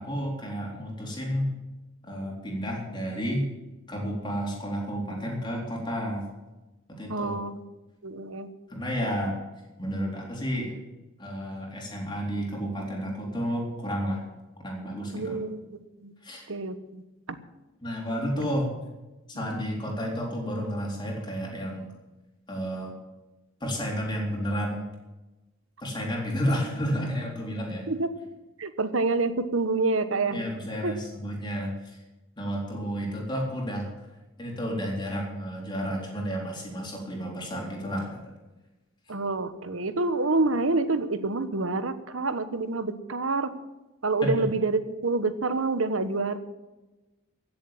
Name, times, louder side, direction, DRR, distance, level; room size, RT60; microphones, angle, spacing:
voice 1, 0.0-1.6 2.0-3.5 3.9-6.3 6.9-7.4 8.7-9.4 9.8-10.8 11.2-14.2 14.6-15.4 16.2-16.4 17.8-18.8 19.3-21.9 22.5-22.9 23.6-24.9 25.8-27.9 30.3-32.0 32.4-33.9 34.4-38.2 44.2-44.5, equal, 20° left, -1 dB, 3.8 m, -31 dB
voice 2, 7.1-7.6 8.0-8.5 15.1-15.6 16.0-16.1 16.5-17.0 17.3-17.4 27.9-28.1 28.6-30.4 30.8-30.9 39.1-43.5 44.0-46.4, right 3 dB, 75° right, 11 dB, 1.2 m, -27 dB
15.5 x 7.5 x 9.1 m, 1.1 s
head